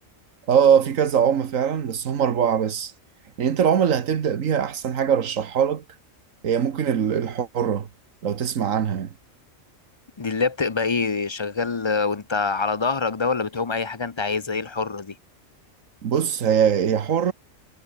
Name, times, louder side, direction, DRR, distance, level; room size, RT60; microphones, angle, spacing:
voice 1, 0.5-2.9 3.4-5.8 6.4-7.9 8.2-9.1 16.0-17.3, right 8 dB, 75° right, 1.6 m, -22 dB
voice 2, 10.2-15.1, left 4 dB, 30° left, 0.6 m, -25 dB
omnidirectional pair, 1.4 m